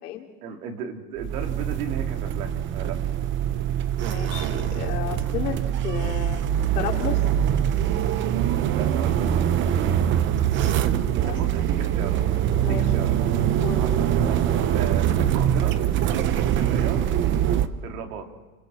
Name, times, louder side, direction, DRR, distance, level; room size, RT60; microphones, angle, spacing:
voice 1, 0.4-3.0 8.7-9.6 11.3-12.2 12.6-13.2 13.8-15.7 16.5-17.1 17.8-18.3, right 7 dB, 70° right, 3 dB, 3.2 m, -35 dB
sound 1, 1.2-17.7, right 10 dB, 25° right, 0.8 m, -23 dB
voice 2, 4.0-6.4 6.7-7.2 11.2-11.4 12.6-12.8 13.6-13.8, left 10 dB, 90° left, 2 dB, 3.3 m, -32 dB
29.5 x 25.0 x 4.3 m, 1.2 s
supercardioid pair, 150°, 45 cm